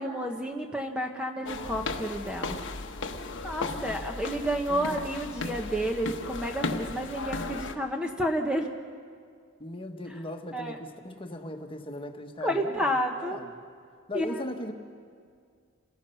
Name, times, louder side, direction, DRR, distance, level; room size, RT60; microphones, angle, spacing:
voice 1, 0.0-2.6 3.4-8.7 10.5-10.8 12.4-13.4 14.1-14.4, equal, 5° right, 2 dB, 1.0 m, -30 dB
sound 1, 1.5-7.8, left 3 dB, 60° left, 1.1 m, -35 dB
voice 2, 3.6-4.1 4.7-5.0 9.6-13.7 14.1-14.7, left 1 dB, 25° left, 4 dB, 1.4 m, -39 dB
28.0 x 18.5 x 5.7 m, 2.1 s
head